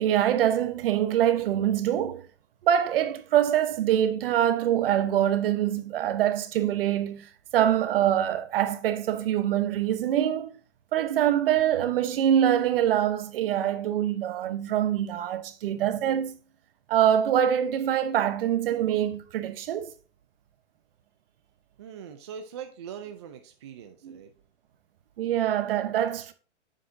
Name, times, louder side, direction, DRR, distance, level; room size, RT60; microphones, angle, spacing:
voice 1, 0.0-2.3 2.6-10.5 10.9-16.4 16.9-19.9 24.0-24.2 25.2-26.3, right 10 dB, 55° right, 0.9 m, -24 dB
voice 2, 21.8-24.3, right 8 dB, 25° right, 0.3 m, -41 dB
7.4 x 6.5 x 2.6 m
hypercardioid pair, 145°, 35 cm